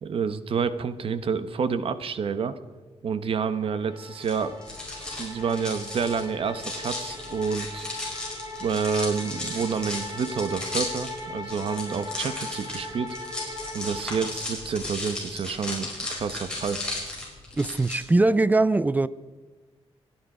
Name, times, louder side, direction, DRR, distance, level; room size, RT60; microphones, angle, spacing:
voice 1, 0.0-2.5 3.0-4.5 5.2-7.9 8.6-13.1 13.7-16.8, right 6 dB, 60° right, 1.0 m, -28 dB
sound 1, 3.3-14.7, left 2 dB, 35° right, 5.7 m, -40 dB
sound 2, 4.2-18.0, left 2 dB, 10° left, 5.2 m, -35 dB
voice 2, 17.6-19.1, right 2 dB, 15° right, 0.4 m, -21 dB
28.5 x 10.5 x 4.9 m
wide cardioid pair, 160°, 11 cm